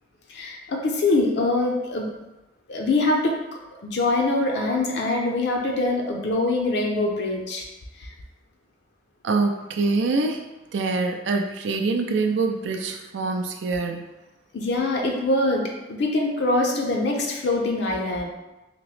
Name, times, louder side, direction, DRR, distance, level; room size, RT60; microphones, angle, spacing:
voice 1, 0.3-2.1 2.7-3.4 3.8-7.6 8.0-8.1 14.5-18.3, left 2 dB, 65° left, 0 dB, 0.5 m, -24 dB
voice 2, 9.2-10.4 10.7-14.0, right 3 dB, 75° right, 4 dB, 0.4 m, -24 dB
2.9 x 2.9 x 3.1 m, 1.0 s
head